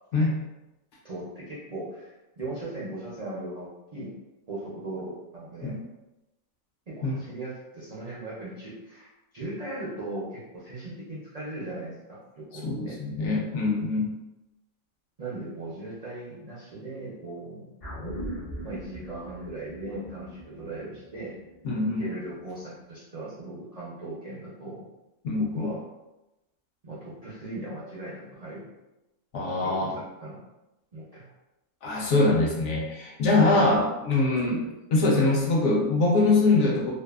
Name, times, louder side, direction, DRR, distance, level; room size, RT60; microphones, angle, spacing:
voice 1, 1.0-4.1 4.5-5.7 6.9-9.1 9.3-12.9 15.2-17.7 18.6-21.3 21.8-24.9 25.4-25.8 26.8-28.7 29.6-30.4 30.9-31.3 33.5-33.7 34.6-34.7, right 2 dB, 60° right, -7 dB, 0.4 m, -38 dB
voice 2, 12.6-14.1 21.6-22.0 25.2-25.7 29.3-30.0 31.8-34.6 34.9-36.9, left 2 dB, 70° left, -2 dB, 0.8 m, -23 dB
sound 1, 17.8-22.4 22.7-22.8, right 1 dB, 40° left, 0.5 m, -40 dB
2.6 x 2.3 x 2.3 m, 0.98 s
omnidirectional pair, 1.4 m